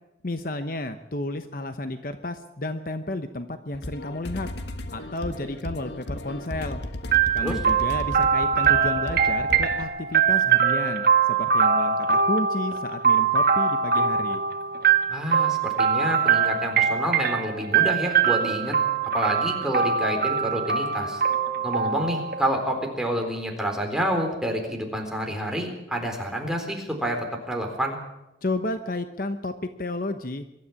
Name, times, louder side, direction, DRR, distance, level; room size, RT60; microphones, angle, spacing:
voice 1, 0.2-4.5 4.9-6.8 7.3-14.4 28.4-30.4, left 2 dB, 50° left, 8 dB, 1.0 m, -32 dB
sound 1, 3.7-9.8, left 1 dB, 70° left, 1.6 m, -35 dB
sound 2, 7.1-22.9, right 6 dB, 50° right, 1.9 m, -23 dB
voice 2, 15.1-18.8 19.1-21.2 21.6-28.0, right 1 dB, 5° right, 2 dB, 3.9 m, -28 dB
23.5 x 13.0 x 8.5 m, 0.89 s
head